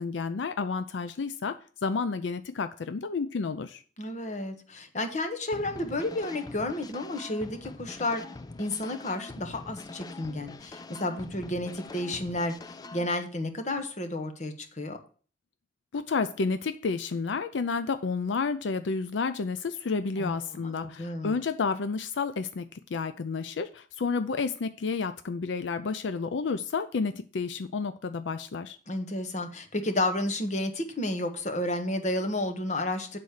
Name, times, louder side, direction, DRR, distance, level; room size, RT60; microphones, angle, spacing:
voice 1, 0.0-1.6 1.8-3.8 15.9-28.8, left 4 dB, 85° left, 10 dB, 0.5 m, -30 dB
voice 2, 4.0-8.2 8.6-12.5 12.9-15.0 20.2-21.3 28.9-33.2, left 1 dB, 40° left, 7 dB, 1.1 m, -31 dB
sound 1, 5.5-13.1, left 3 dB, 20° left, 0.4 m, -44 dB
9.4 x 4.1 x 6.5 m, 0.42 s
head